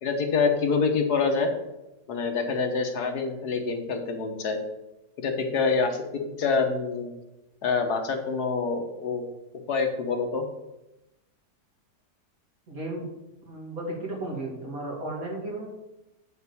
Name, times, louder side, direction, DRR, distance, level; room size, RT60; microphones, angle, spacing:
voice 1, 0.0-1.5 2.1-4.6 5.2-6.0 6.4-7.1 7.6-9.3 9.7-10.5, left 4 dB, 75° left, 4 dB, 1.7 m, -26 dB
voice 2, 12.7-13.1 13.5-15.7, right 1 dB, 60° right, -1 dB, 2.8 m, -34 dB
9.2 x 4.6 x 7.0 m, 0.94 s
omnidirectional pair, 1.7 m